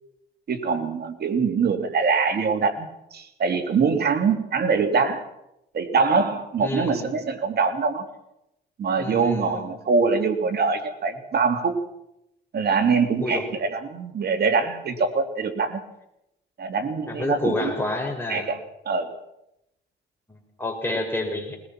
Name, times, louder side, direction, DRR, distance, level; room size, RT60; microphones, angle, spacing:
voice 1, 0.5-5.3 5.7-8.1 8.8-11.8 12.5-15.8 16.6-17.7 18.3-18.6 18.8-19.1, right 5 dB, 55° right, 7 dB, 2.8 m, -23 dB
voice 2, 6.6-7.1 9.0-9.7 13.2-13.4 17.1-18.5 20.3-21.6, left 2 dB, 10° left, 1 dB, 6.3 m, -29 dB
21.0 x 20.5 x 6.1 m, 0.84 s
cardioid pair, 90°, 20 cm